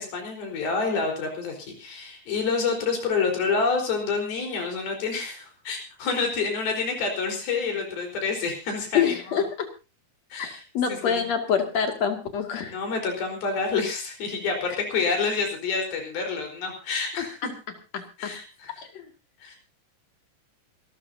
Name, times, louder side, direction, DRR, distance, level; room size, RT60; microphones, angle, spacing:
voice 1, 0.0-9.4 10.3-10.6 10.9-11.3 12.6-17.5 18.2-18.8 19.4-19.6, left 4 dB, 75° left, 2 dB, 6.2 m, -28 dB
voice 2, 8.9-9.7 10.4-10.5 10.7-12.7 17.2-17.5 17.9-18.3 18.8-19.1, left 7 dB, 50° left, 5 dB, 3.1 m, -26 dB
26.5 x 13.5 x 2.8 m, 0.31 s
omnidirectional pair, 4.4 m